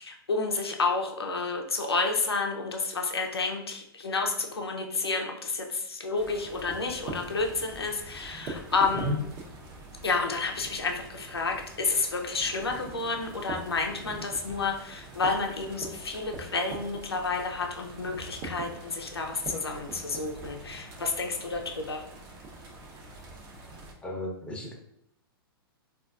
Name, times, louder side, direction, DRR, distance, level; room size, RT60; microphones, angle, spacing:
voice 1, 0.0-9.2 10.0-22.0, left 4 dB, 90° left, 3 dB, 0.5 m, -30 dB
sound 1, 6.2-23.9, right 2 dB, 40° right, 0.7 m, -43 dB
voice 2, 24.0-24.7, left 1 dB, 10° left, -2 dB, 0.8 m, -32 dB
3.9 x 2.4 x 2.4 m, 0.73 s
hypercardioid pair, 115°, 13 cm